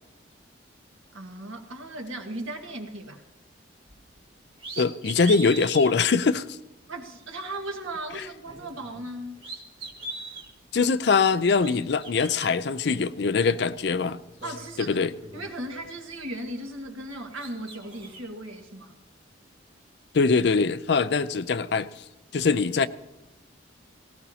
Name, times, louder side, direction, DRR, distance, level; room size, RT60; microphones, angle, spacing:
voice 1, 1.1-3.2 6.9-9.4 14.4-15.0 15.3-18.9, right 1 dB, 90° right, 1.8 m, -37 dB
sound 1, 3.9-4.1 4.6-5.9 6.5-6.6 8.4-9.1 9.4-10.5 11.4-12.5 13.7-13.8 14.2-15.9 16.2-17.0 17.3-18.2, right 2 dB, 30° right, 2.0 m, -40 dB
voice 2, 4.8-6.6 10.7-14.2 14.8-15.1 20.1-21.9 22.3-22.9, left 4 dB, 55° left, 0.5 m, -22 dB
18.0 x 17.5 x 2.8 m
head